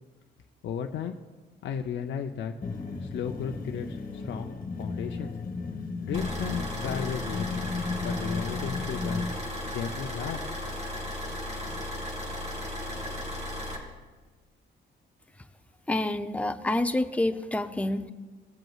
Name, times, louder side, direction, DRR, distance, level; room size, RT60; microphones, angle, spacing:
voice 1, 0.6-1.2 1.6-2.5 3.0-5.3 6.0-7.6 8.0-9.2 9.7-10.5, left 7 dB, 65° left, 3 dB, 0.6 m, -34 dB
sound 1, 2.6-9.4, left 4 dB, 45° left, 1.5 m, -34 dB
sound 2, 6.1-13.8, left 1 dB, 35° right, 2.3 m, -35 dB
voice 2, 15.9-18.1, left 1 dB, 5° left, 9 dB, 0.5 m, -28 dB
18.0 x 7.8 x 2.4 m, 1.3 s
cardioid pair, 90°, 20 cm